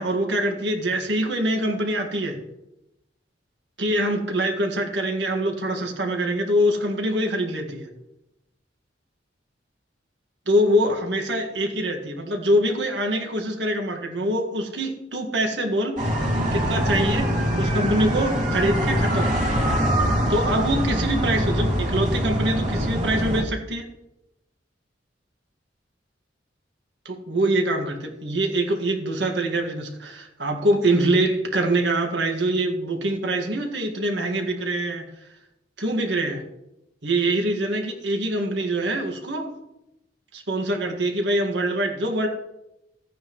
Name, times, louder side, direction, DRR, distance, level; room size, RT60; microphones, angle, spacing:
voice 1, 0.0-2.4 3.8-7.9 10.5-16.0 16.5-17.3 17.6-19.3 20.3-23.9 27.1-35.0 35.8-36.4 37.0-39.5 40.3-42.3, right 1 dB, 70° right, 3 dB, 1.8 m, -24 dB
sound 1, 16.0-23.4, equal, 45° right, 2.3 m, -23 dB
15.5 x 9.2 x 3.1 m, 0.90 s
head